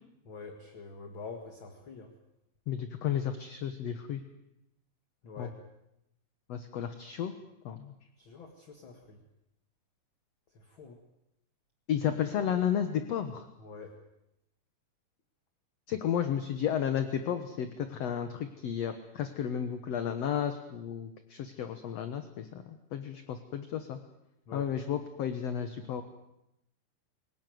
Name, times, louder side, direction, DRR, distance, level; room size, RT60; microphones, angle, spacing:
voice 1, 0.3-2.1 5.2-5.6 8.2-9.2 10.6-11.0 13.6-13.9 24.5-24.7, left 4 dB, 40° left, 5 dB, 2.0 m, -46 dB
voice 2, 2.7-4.2 5.4-5.5 6.5-7.3 7.7-7.9 11.9-13.5 15.9-24.0 24.5-26.0, left 9 dB, 60° left, 8 dB, 1.9 m, -33 dB
26.0 x 17.5 x 9.3 m, 0.86 s
omnidirectional pair, 4.2 m